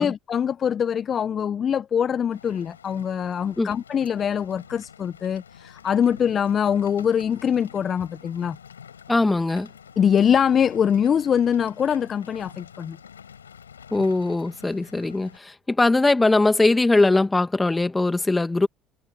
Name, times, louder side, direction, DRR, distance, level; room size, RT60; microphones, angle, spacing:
voice 1, 0.0-8.6 10.0-13.0, left 8 dB, 40° left, 1.0 m, -23 dB
Rain, 2.3-15.4, left 7 dB, 85° left, 7.4 m, -47 dB
voice 2, 9.1-9.7 13.9-18.7, left 2 dB, 15° left, 2.3 m, -21 dB
hypercardioid pair, 60°, 0 cm